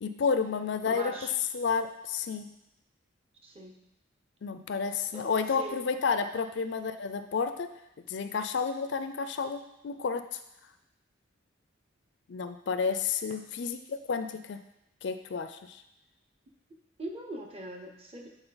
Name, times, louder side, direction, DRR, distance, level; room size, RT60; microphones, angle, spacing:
voice 1, 0.0-1.1 1.5-2.5 4.4-7.7 8.1-10.4 12.3-14.6 15.0-15.8, left 5 dB, 60° left, 9 dB, 0.4 m, -31 dB
voice 2, 0.9-1.3 3.4-3.8 5.1-5.3 5.6-5.9 17.0-18.3, right 1 dB, 30° right, 2 dB, 0.7 m, -41 dB
7.9 x 4.0 x 4.0 m, 0.84 s
head